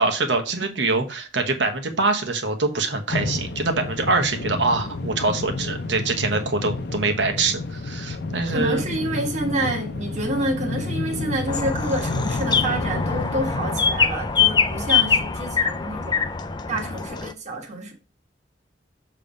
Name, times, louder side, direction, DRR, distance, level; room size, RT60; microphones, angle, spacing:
voice 1, 0.0-8.8, right 3 dB, 85° right, 1.2 m, -24 dB
sound 1, 3.1-13.8, left 3 dB, 65° left, 0.7 m, -30 dB
voice 2, 8.5-16.2 16.7-17.9, right 1 dB, 40° right, 1.5 m, -28 dB
sound 2, 11.5-17.3, left 6 dB, 25° left, 0.5 m, -23 dB
7.0 x 3.3 x 5.1 m
head